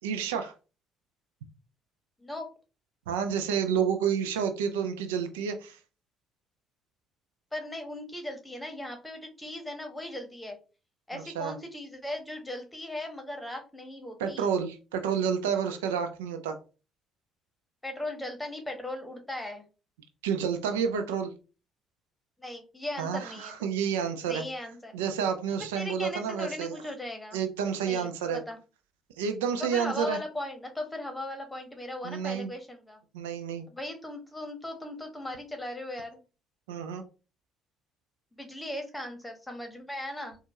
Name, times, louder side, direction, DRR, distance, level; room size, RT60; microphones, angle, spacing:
voice 1, 0.0-0.5 3.1-5.8 11.1-11.6 14.2-16.6 20.2-21.3 23.0-24.4 24.9-26.8 27.3-28.4 29.2-30.2 32.0-32.5 33.1-33.6 36.7-37.0, right 7 dB, 75° right, 7 dB, 0.4 m, -30 dB
voice 2, 7.5-10.6 11.1-14.5 17.8-19.6 22.4-23.5 24.2-24.9 25.7-27.4 27.8-28.6 29.6-33.0 33.7-36.2 38.3-40.4, left 1 dB, 10° left, 4 dB, 1.2 m, -38 dB
4.3 x 2.4 x 2.7 m, 0.33 s
figure-of-eight pair, 50°, 0 cm